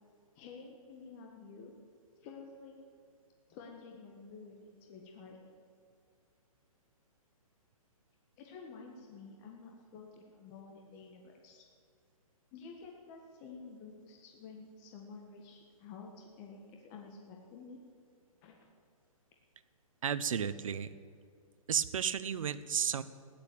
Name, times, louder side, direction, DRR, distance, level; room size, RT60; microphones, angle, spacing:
voice 1, 0.3-1.7 2.2-2.8 3.5-5.5 8.4-11.6 12.5-17.8 18.4-18.6, left 4 dB, 25° left, 1 dB, 1.6 m, -51 dB
voice 2, 20.0-20.9 21.7-23.0, right 8 dB, 65° right, 14 dB, 0.9 m, -33 dB
15.5 x 10.5 x 8.7 m, 2.3 s
hypercardioid pair, 160°, 19 cm